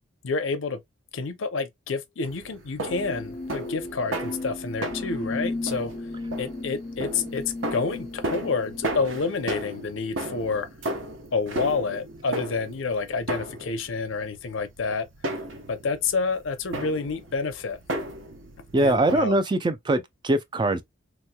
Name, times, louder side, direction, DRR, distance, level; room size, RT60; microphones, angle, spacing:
voice 1, 0.2-0.8 1.1-5.9 6.4-10.7 11.3-15.1 15.7-17.8 18.8-19.4, left 4 dB, 90° left, 0.6 m, -29 dB
sound 1, 2.2-19.2, right 1 dB, 75° right, 0.8 m, -35 dB
sound 2, 2.9-9.0, left 2 dB, 45° left, 0.4 m, -35 dB
voice 2, 18.7-20.8, right 2 dB, 25° right, 0.3 m, -22 dB
3.1 x 3.0 x 2.2 m
head